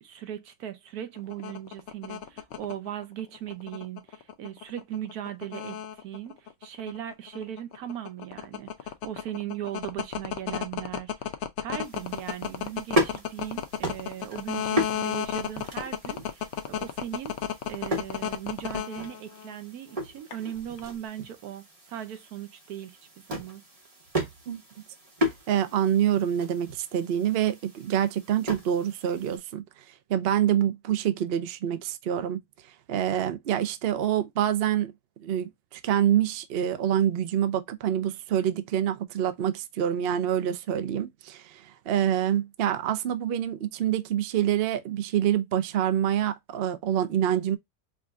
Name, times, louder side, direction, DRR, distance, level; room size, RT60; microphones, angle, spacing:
voice 1, 0.0-23.6, right 11 dB, 80° right, 1.2 m, -38 dB
sound 1, 1.2-19.5 20.3-20.9, left 9 dB, 60° left, 0.8 m, -32 dB
sound 2, 11.8-29.4, equal, 25° right, 1.2 m, -35 dB
voice 2, 25.5-29.6 30.1-32.4 32.9-34.9 35.2-47.6, right 10 dB, 60° right, 0.6 m, -26 dB
4.8 x 2.6 x 2.3 m
omnidirectional pair, 1.6 m